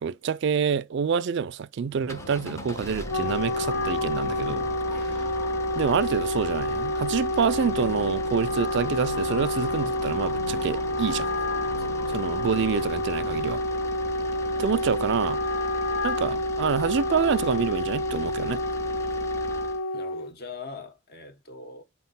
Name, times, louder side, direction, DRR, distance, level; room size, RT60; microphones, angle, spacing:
voice 1, 0.0-4.7 5.0-5.2 5.8-11.3 12.1-13.6 14.6-15.4 16.0-18.6, right 6 dB, 55° right, 0.3 m, -27 dB
sound 1, 1.9-19.8, left 1 dB, 15° left, 0.5 m, -40 dB
sound 2, 2.0-15.4, left 1 dB, 85° left, 1.6 m, -42 dB
Wind instrument woodwind instrument, 2.9-20.3, left 1 dB, 70° left, 0.7 m, -28 dB
voice 2, 4.9-5.3 11.8-12.0 19.9-21.8, left 3 dB, 50° left, 1.1 m, -42 dB
4.2 x 4.2 x 5.5 m
head